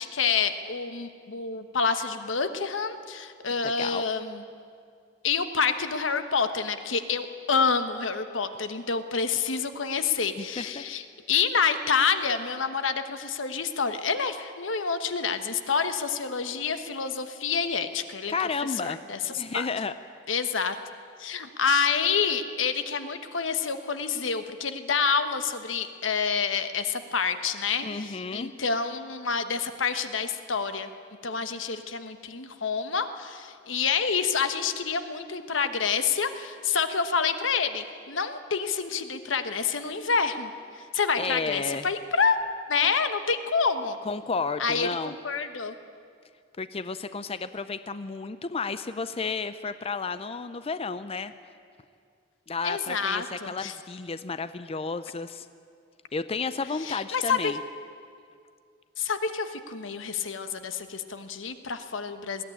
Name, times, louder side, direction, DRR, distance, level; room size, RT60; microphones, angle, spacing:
voice 1, 0.0-4.4 5.2-18.3 18.8-19.7 20.3-20.8 21.2-30.9 31.2-40.5 40.9-42.4 42.7-44.0 44.6-45.7 52.6-53.7 56.8-57.5 59.0-62.4, left 5 dB, 90° left, 9 dB, 1.3 m, -28 dB
voice 2, 10.4-10.8 18.3-19.0 19.3-19.9 27.8-28.5 41.2-41.8 44.1-45.1 46.6-51.3 52.5-55.5 56.1-57.6, left 4 dB, 30° left, 12 dB, 0.5 m, -32 dB
20.5 x 15.5 x 10.0 m, 2.3 s
head